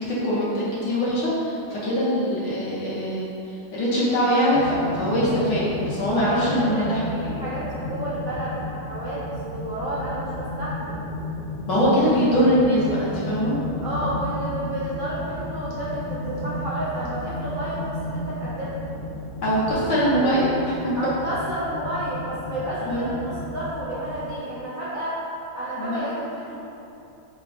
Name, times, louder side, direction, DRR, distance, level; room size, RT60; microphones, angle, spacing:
voice 1, 0.1-3.3 3.7-7.0 11.7-13.6 19.4-20.7 22.8-23.0 25.8-26.0, equal, 60° left, -9 dB, 1.4 m, -22 dB
sound 1, 4.5-24.4, left 1 dB, 85° left, 1.8 m, -33 dB
voice 2, 6.4-11.0 13.8-18.7 20.9-25.2 25.5-26.6, right 1 dB, 80° right, -9 dB, 0.7 m, -31 dB
3.9 x 2.2 x 4.3 m, 2.7 s
omnidirectional pair, 2.4 m